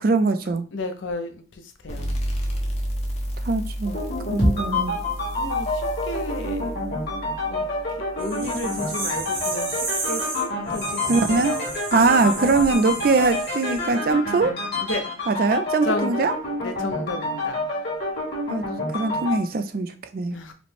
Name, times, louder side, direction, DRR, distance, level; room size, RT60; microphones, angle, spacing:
voice 1, 0.0-0.7 3.4-4.0 4.3-5.0 11.1-11.5 11.9-14.5 15.3-16.3 18.5-18.6 18.9-20.4, right 3 dB, 50° right, 0.4 m, -21 dB
voice 2, 0.7-2.2 5.4-6.8 7.2-7.7 8.2-11.9 14.8-15.1 15.8-16.2 16.6-17.7 20.3-20.5, left 2 dB, 80° left, 0.7 m, -33 dB
sound 1, 1.9-9.2, equal, 35° left, 0.7 m, -32 dB
sound 2, 3.9-19.4, left 2 dB, 55° left, 1.9 m, -28 dB
sound 3, 8.2-14.0, right 3 dB, 90° right, 1.4 m, -32 dB
5.0 x 2.1 x 3.2 m
head